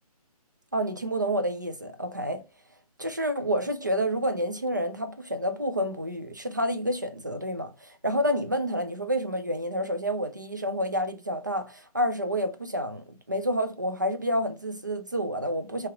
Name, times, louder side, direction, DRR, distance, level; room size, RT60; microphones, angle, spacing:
voice 1, 0.7-2.4 3.0-15.9, equal, 30° right, 0.4 m, -29 dB
2.9 x 2.9 x 3.5 m
hypercardioid pair, 180°, 20 cm